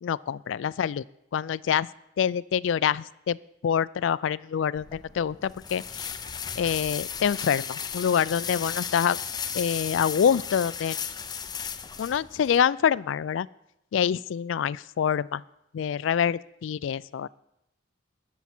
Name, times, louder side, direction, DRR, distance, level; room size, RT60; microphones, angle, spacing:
voice 1, 0.0-1.0 1.3-1.9 2.2-3.4 3.6-6.1 6.6-9.2 9.5-11.0 12.0-13.5 13.9-15.4 15.7-17.3, left 8 dB, 85° left, 20 dB, 0.3 m, -26 dB
sound 1, 4.8-12.6, left 7 dB, 20° left, 0.5 m, -35 dB
20.5 x 7.2 x 4.4 m, 0.82 s
head